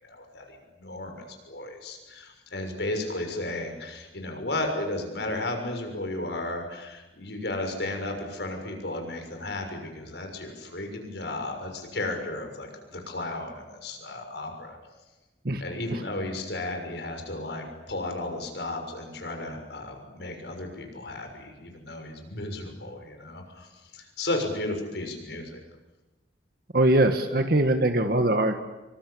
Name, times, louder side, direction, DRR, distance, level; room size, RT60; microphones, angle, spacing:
voice 1, 0.0-14.8 15.6-23.7 23.9-25.6, left 2 dB, 70° left, 4 dB, 6.6 m, -34 dB
voice 2, 26.7-28.5, right 1 dB, 55° right, 6 dB, 1.7 m, -22 dB
26.5 x 24.5 x 8.7 m, 1.1 s
head